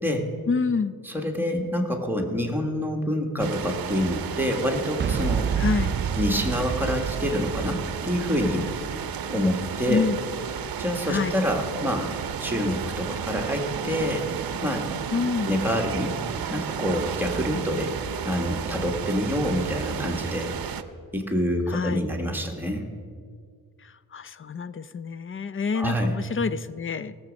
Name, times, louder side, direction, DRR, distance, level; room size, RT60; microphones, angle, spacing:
voice 1, 0.5-1.0 5.6-6.0 9.9-10.2 11.1-11.3 15.1-15.5 17.5-17.7 21.7-22.1 24.1-27.2, left 5 dB, 35° left, 15 dB, 0.4 m, -27 dB
voice 2, 1.0-5.5 6.2-8.7 9.3-10.1 10.8-12.1 12.4-14.2 14.6-14.9 15.5-16.1 16.5-17.9 18.2-20.5 21.1-22.9 25.7-26.2, equal, 5° right, 1 dB, 1.6 m, -26 dB
sound 1, 3.4-20.8, right 8 dB, 65° right, 0.7 m, -33 dB
Boom, 5.0-10.9, right 7 dB, 30° right, 0.4 m, -30 dB
18.0 x 7.2 x 5.2 m, 2.1 s
wide cardioid pair, 100°, 39 cm